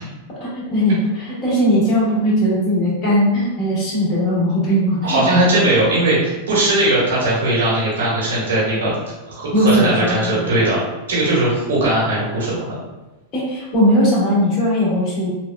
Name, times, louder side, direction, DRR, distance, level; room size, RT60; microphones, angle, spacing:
voice 1, 0.4-5.2 9.5-10.7 13.3-15.3, equal, 40° left, -7 dB, 1.5 m, -18 dB
voice 2, 5.0-8.9 9.3-10.8 11.1-12.8, right 1 dB, 85° right, -6 dB, 1.4 m, -18 dB
3.3 x 2.3 x 2.2 m, 1.1 s
hypercardioid pair, 115°, 0 cm